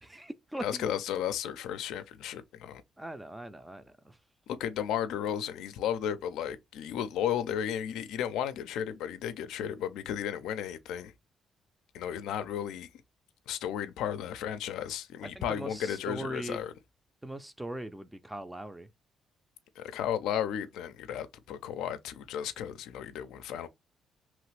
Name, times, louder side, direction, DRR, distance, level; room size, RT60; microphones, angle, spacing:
voice 1, 0.0-0.9 3.0-4.2 15.3-16.6 17.2-18.9, right 1 dB, 10° right, 0.4 m, -40 dB
voice 2, 0.6-2.8 4.5-11.1 11.9-12.9 13.5-16.7 19.8-23.7, left 9 dB, 90° left, 0.4 m, -34 dB
3.0 x 2.4 x 3.1 m
cardioid pair, 90°, 0 cm